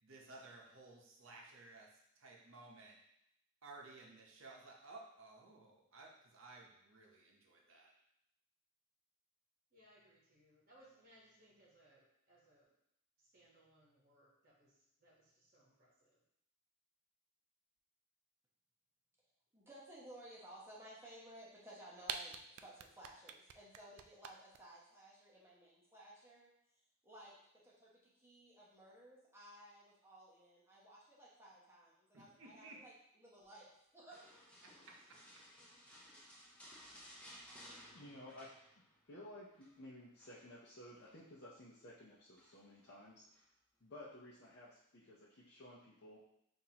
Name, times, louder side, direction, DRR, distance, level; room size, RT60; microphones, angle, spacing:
voice 1, 0.0-3.0 3.6-7.9 32.1-32.8 34.6-35.2, right 3 dB, 60° right, -1 dB, 0.8 m, -57 dB
voice 2, 9.7-12.7 13.2-16.2, right 1 dB, 40° right, -6 dB, 1.1 m, -67 dB
voice 3, 19.5-26.5 27.0-34.3 36.1-36.2, right 1 dB, 10° right, -7 dB, 0.9 m, -57 dB
sound 1, 21.7-21.8 22.0-24.6, right 8 dB, 80° right, 0.3 m, -44 dB
sound 2, 34.1-39.1 39.4-39.7 40.2-41.2 42.3-42.8 43.3-43.5, equal, 5° left, 0.5 m, -59 dB
voice 4, 37.9-38.5 39.1-43.3 43.8-46.2, left 1 dB, 50° left, -8 dB, 0.6 m, -55 dB
5.7 x 2.6 x 2.8 m, 0.76 s
head